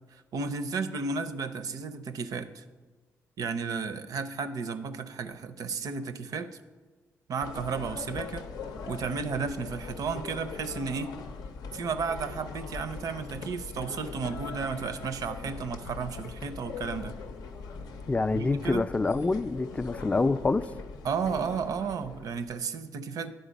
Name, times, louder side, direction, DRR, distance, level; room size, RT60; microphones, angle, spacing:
voice 1, 0.3-2.6 3.4-6.5 7.3-8.5 8.9-11.1 11.7-17.1 18.3-18.8 21.0-23.3, right 5 dB, 65° right, 0.5 m, -33 dB
sound 1, 7.4-22.6, left 4 dB, 80° left, 0.6 m, -41 dB
voice 2, 18.1-20.7, left 3 dB, 20° left, 0.3 m, -26 dB
10.5 x 3.9 x 5.1 m
supercardioid pair, 55°, 7 cm